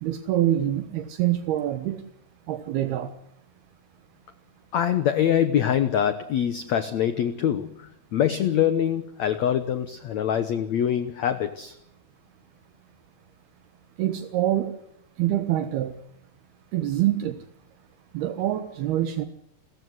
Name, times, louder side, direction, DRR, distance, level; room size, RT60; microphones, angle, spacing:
voice 1, 0.0-2.0 2.5-3.1 14.0-14.7 15.2-15.9 16.7-17.4 18.1-19.3, right 12 dB, 75° right, 9 dB, 3.2 m, -25 dB
voice 2, 4.7-11.8, left 9 dB, 70° left, 12 dB, 1.8 m, -24 dB
30.0 x 15.0 x 8.1 m, 0.72 s
omnidirectional pair, 4.6 m